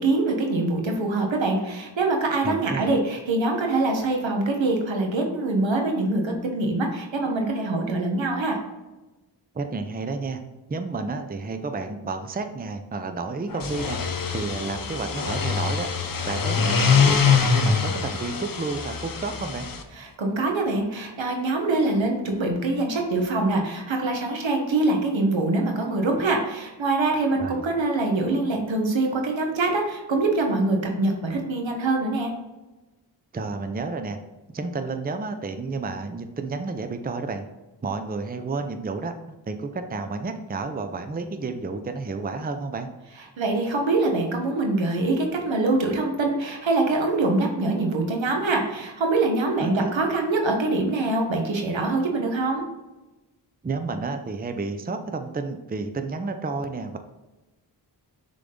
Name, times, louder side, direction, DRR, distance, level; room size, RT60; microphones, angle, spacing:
voice 1, 0.0-8.6 19.9-32.3 43.4-52.6, right 2 dB, 80° right, 2 dB, 1.3 m, -24 dB
voice 2, 2.4-3.0 9.5-10.4 10.7-14.0 14.3-15.9 16.2-19.7 27.4-27.6 33.3-34.2 34.5-37.4 37.8-39.1 39.5-42.9 49.6-49.9 53.6-57.0, right 3 dB, 20° right, 7 dB, 0.6 m, -31 dB
sound 1, 13.5-19.8, left 6 dB, 45° left, 0.8 m, -24 dB
6.5 x 3.8 x 3.8 m, 1.1 s
cardioid pair, 50°, 45 cm